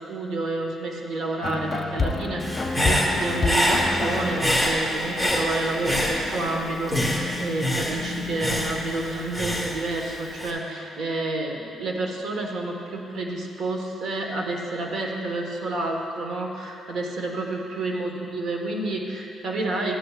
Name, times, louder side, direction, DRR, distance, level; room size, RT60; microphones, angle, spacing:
voice 1, 0.0-20.0, right 2 dB, 70° right, 0 dB, 1.4 m, -29 dB
sound 1, 1.4-11.0, left 3 dB, 30° left, 0.8 m, -32 dB
Human voice / Breathing, 2.4-6.6 6.9-10.5, equal, 15° right, 1.8 m, -26 dB
14.0 x 9.7 x 2.5 m, 2.7 s
cardioid pair, 90°, 0 cm